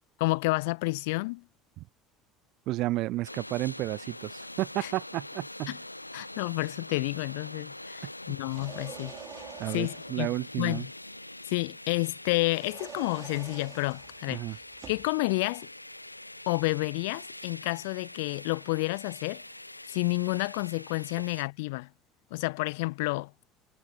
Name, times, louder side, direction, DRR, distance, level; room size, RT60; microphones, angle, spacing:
voice 1, 0.2-1.4 4.8-4.9 5.7-5.8 6.1-9.1 9.7-10.3 10.6-10.9 11.5-14.4 14.9-15.7 16.5-19.4 19.9-21.9 22.3-23.3, left 25 dB, 60° left, 0.4 m, -30 dB
voice 2, 2.7-5.8 8.0-8.1 9.6-10.9 14.3-14.6, right 18 dB, 50° right, 0.9 m, -32 dB
sound 1, 3.2-21.4, left 1 dB, 85° left, 1.2 m, -44 dB
sound 2, 8.4-10.3 12.4-15.1, right 8 dB, 35° right, 3.9 m, -47 dB
figure-of-eight pair, 65°, 0 cm